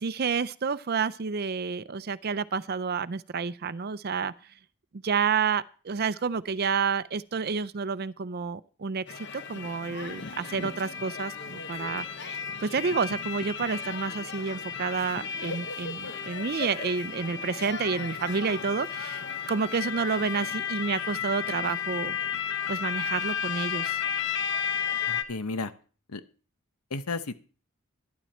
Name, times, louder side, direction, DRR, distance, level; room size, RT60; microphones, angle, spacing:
voice 1, 0.0-4.3 4.9-12.3 12.6-22.2 22.7-24.0, right 5 dB, 45° right, 0.5 m, -30 dB
sound 1, 9.1-25.2, left 7 dB, 50° left, 1.0 m, -33 dB
voice 2, 25.1-25.7 26.1-26.2 26.9-27.4, left 3 dB, 80° left, 1.0 m, -33 dB
12.0 x 12.0 x 4.3 m
head